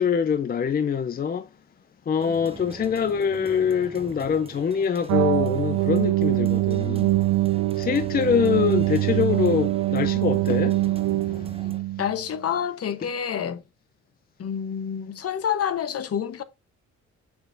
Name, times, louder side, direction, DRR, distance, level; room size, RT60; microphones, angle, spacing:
voice 1, 0.0-1.5 2.1-7.1 7.8-10.8, left 7 dB, 30° left, 0.5 m, -24 dB
sound 1, 2.2-11.8, right 3 dB, 20° right, 0.9 m, -43 dB
sound 2, 5.1-12.2, right 17 dB, 70° right, 0.5 m, -23 dB
voice 2, 12.0-13.6 14.4-16.4, left 8 dB, 50° left, 0.9 m, -28 dB
7.1 x 6.1 x 2.6 m
cardioid pair, 90°, 30 cm